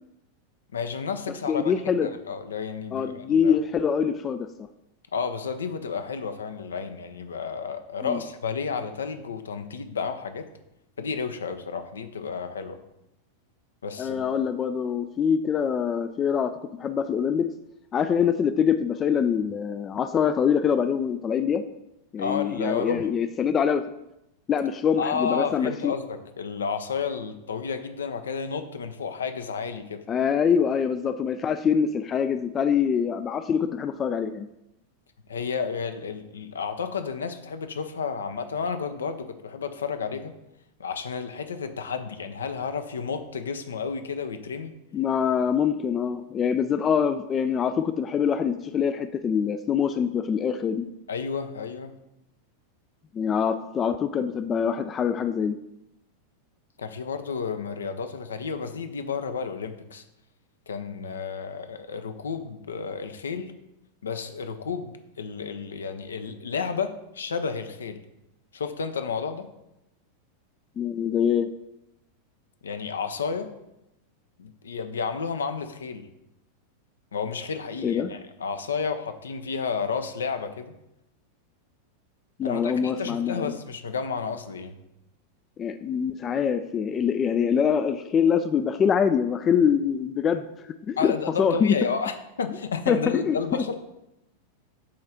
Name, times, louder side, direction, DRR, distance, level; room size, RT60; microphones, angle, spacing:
voice 1, 0.7-3.6 5.1-10.5 11.0-12.8 13.8-14.2 22.2-23.1 25.0-30.0 35.3-40.3 40.8-44.8 51.1-51.9 56.8-60.0 60.7-63.5 64.0-64.9 65.2-68.0 68.5-69.5 72.6-73.5 74.4-76.1 77.1-80.7 82.4-84.8 91.0-93.8, left 5 dB, 70° left, 9 dB, 0.6 m, -31 dB
voice 2, 1.5-2.1 2.9-4.5 8.0-8.2 14.0-16.5 16.8-17.5 17.9-21.6 22.1-23.8 24.5-25.9 30.1-34.5 44.9-50.9 53.1-55.6 70.8-71.5 77.8-78.1 82.4-83.5 85.6-90.4 90.9-91.1 91.4-91.7 92.9-93.6, left 7 dB, 25° left, 10 dB, 0.3 m, -24 dB
8.4 x 3.2 x 5.7 m, 0.88 s
figure-of-eight pair, 90°, 0 cm